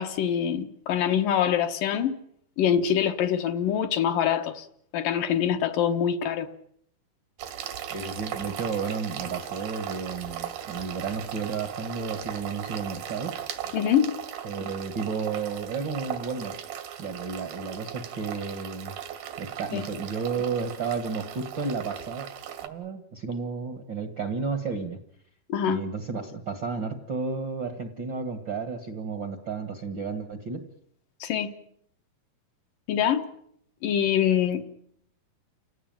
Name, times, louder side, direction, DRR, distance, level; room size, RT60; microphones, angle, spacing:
voice 1, 0.0-2.2 2.6-4.7 4.9-6.5 13.7-14.1 19.7-19.8 25.5-25.8 31.2-31.5 32.9-33.3 33.8-34.7, left 9 dB, 70° left, 2.8 m, -24 dB
sound 1, 7.4-22.7, right 10 dB, 80° right, 3.5 m, -38 dB
voice 2, 7.9-13.3 14.4-16.5 17.0-18.9 19.4-22.3 22.6-25.0 25.7-30.7, right 5 dB, 50° right, 1.4 m, -32 dB
30.0 x 17.5 x 9.0 m
omnidirectional pair, 4.3 m